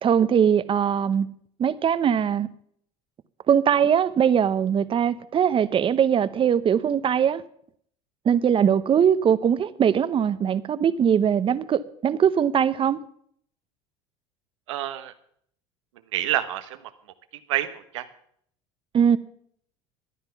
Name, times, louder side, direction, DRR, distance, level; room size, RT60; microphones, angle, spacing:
voice 1, 0.0-1.3 1.6-2.5 3.5-7.4 8.2-13.0 18.9-19.2, right 8 dB, 35° right, 0.8 m, -21 dB
voice 2, 14.7-15.1 16.1-16.8 17.5-18.0, right 13 dB, 90° right, 1.1 m, -27 dB
13.5 x 10.0 x 5.8 m
supercardioid pair, 95°, 15 cm